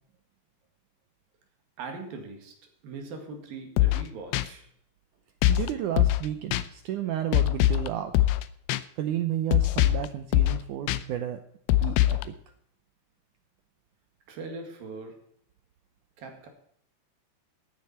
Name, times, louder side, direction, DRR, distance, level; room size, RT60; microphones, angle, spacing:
voice 1, 1.8-2.5 2.8-4.7 14.3-15.2 16.2-16.5, right 3 dB, 65° right, 4 dB, 3.7 m, -40 dB
sound 1, 3.8-4.0 4.3-4.5 5.4-5.7 6.0-6.3 6.5-6.6 7.3-7.9 8.1-8.4 8.7-8.8 9.5-10.1 10.3-10.6 10.9-11.0 11.7-12.2, left 15 dB, 85° left, 2.6 m, -22 dB
voice 2, 5.5-8.1 9.0-11.4 11.7-12.3, right 11 dB, 80° right, 8 dB, 1.8 m, -32 dB
14.5 x 9.6 x 4.4 m, 0.69 s
omnidirectional pair, 4.5 m